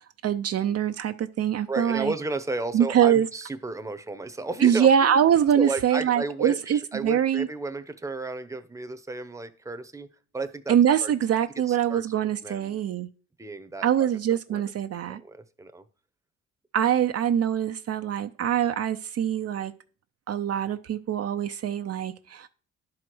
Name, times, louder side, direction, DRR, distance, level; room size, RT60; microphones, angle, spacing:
voice 1, 0.2-2.1 2.7-3.3 4.6-7.5 10.7-13.1 13.8-15.2 16.7-19.7 20.3-22.5, right 9 dB, 55° right, 0.6 m, -23 dB
voice 2, 1.7-5.2 5.5-10.1 10.3-11.1 11.7-12.0 12.4-12.8 13.4-14.6 15.1-15.8, right 3 dB, 10° right, 0.9 m, -33 dB
10.5 x 4.9 x 6.1 m
cardioid pair, 90°, 30 cm